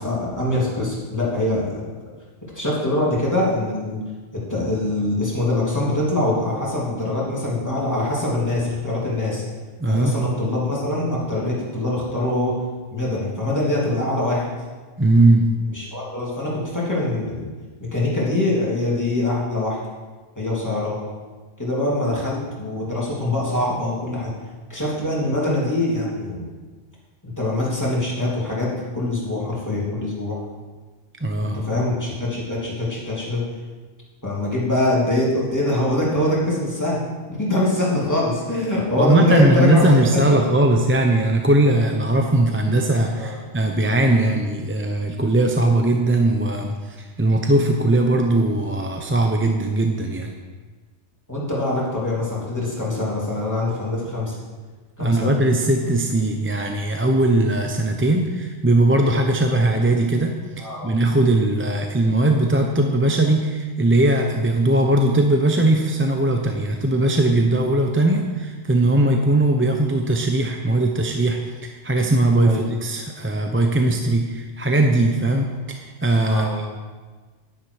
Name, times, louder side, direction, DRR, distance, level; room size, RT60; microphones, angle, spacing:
voice 1, 0.0-1.8 2.5-4.0 4.5-9.4 9.9-12.6 12.9-14.5 15.6-17.5 17.8-19.8 20.3-21.0 21.6-24.3 24.7-26.5 27.2-30.4 31.4-33.4 34.2-37.0 37.3-39.8 40.3-40.4 43.2-43.4 51.3-54.4 55.0-55.4 60.6-60.9 72.4-72.7 76.3-76.6, left 2 dB, 15° left, -6 dB, 3.2 m, -23 dB
voice 2, 9.8-10.2 15.0-15.5 31.2-31.6 39.0-50.3 55.0-76.7, right 1 dB, 15° right, 2 dB, 0.6 m, -19 dB
11.0 x 10.5 x 4.9 m, 1.4 s
omnidirectional pair, 1.2 m